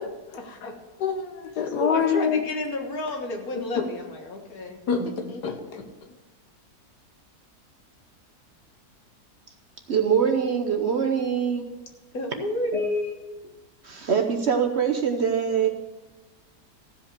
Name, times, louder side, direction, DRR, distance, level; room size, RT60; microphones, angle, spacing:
voice 1, 0.3-0.7 1.6-5.4 12.1-13.3, left 2 dB, 65° left, 2 dB, 2.0 m, -31 dB
voice 2, 1.0-2.4 4.9-5.1 5.4-5.8, left 7 dB, 85° left, 6 dB, 1.6 m, -25 dB
voice 3, 9.9-11.7 12.7-12.8 13.8-15.7, right 7 dB, 50° right, 5 dB, 0.9 m, -23 dB
14.5 x 5.3 x 6.7 m, 1.1 s
omnidirectional pair, 1.7 m